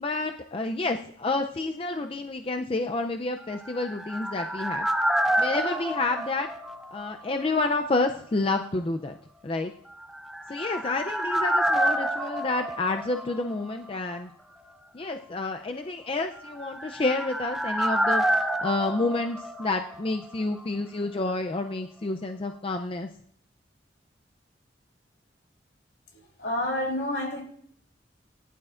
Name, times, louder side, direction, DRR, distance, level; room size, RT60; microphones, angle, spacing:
voice 1, 0.0-4.9 5.4-6.5 6.9-9.1 9.4-9.7 10.5-14.3 14.9-23.1, left 2 dB, 30° left, 0.4 m, -29 dB
sound 1, 3.5-7.4 7.6-7.7 10.1-13.9 14.1-14.2 16.5-20.3 20.6-20.7, right 1 dB, ahead, 0.7 m, -28 dB
voice 2, 26.1-27.4, left 1 dB, 70° left, 3.1 m, -29 dB
20.0 x 11.0 x 2.5 m
head